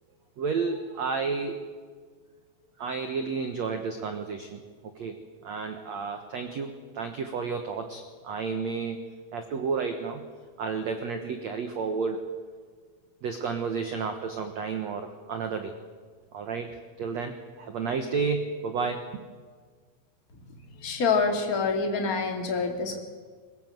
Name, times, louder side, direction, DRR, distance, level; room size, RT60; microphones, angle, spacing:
voice 1, 0.4-1.6 2.8-5.2 5.4-9.0 9.3-10.2 10.6-12.2 13.2-15.7 16.3-19.2, right 5 dB, 80° right, 6 dB, 1.5 m, -31 dB
voice 2, 20.8-23.0, left 4 dB, 30° left, 3 dB, 1.9 m, -26 dB
22.0 x 20.5 x 7.8 m, 1.6 s
omnidirectional pair, 5.1 m